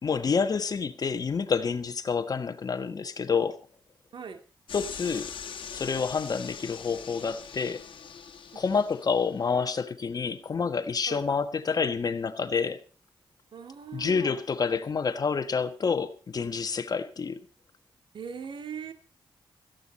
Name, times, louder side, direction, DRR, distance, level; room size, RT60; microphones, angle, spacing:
voice 1, 0.0-3.6 4.7-5.3 5.7-7.8 8.5-12.8 13.9-17.4, left 5 dB, 45° left, 1.5 m, -28 dB
sound 1, 4.7-9.3, left 7 dB, 75° left, 1.8 m, -42 dB
voice 2, 8.5-8.8 11.1-11.2 13.5-14.4 18.1-18.9, right 6 dB, 70° right, 2.4 m, -40 dB
17.5 x 14.5 x 4.3 m
wide cardioid pair, 115°, 9 cm